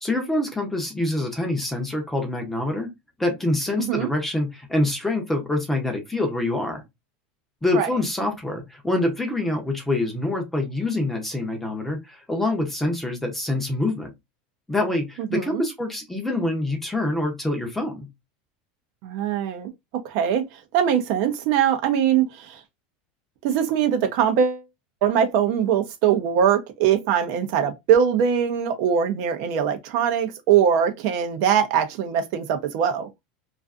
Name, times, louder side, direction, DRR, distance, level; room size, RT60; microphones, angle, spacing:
voice 1, 0.0-2.9 3.2-6.8 7.6-14.1 14.7-18.1, left 2 dB, 5° left, 0.6 m, -25 dB
voice 2, 15.3-15.6 19.0-19.7 20.0-22.6 23.4-24.6 25.0-33.1, right 8 dB, 50° right, 0.5 m, -22 dB
2.4 x 2.4 x 2.3 m
supercardioid pair, 160°, 4 cm